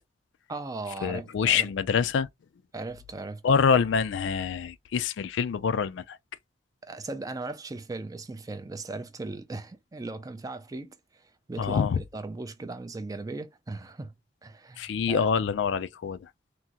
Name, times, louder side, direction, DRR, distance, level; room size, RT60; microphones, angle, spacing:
voice 1, 0.5-1.7 2.7-3.4 6.8-14.1 14.4-15.3, right 2 dB, 20° right, 0.4 m, -38 dB
voice 2, 1.0-2.3 3.4-6.2 11.6-12.0 14.8-16.2, left 6 dB, 70° left, 0.3 m, -25 dB
3.6 x 2.1 x 2.8 m
head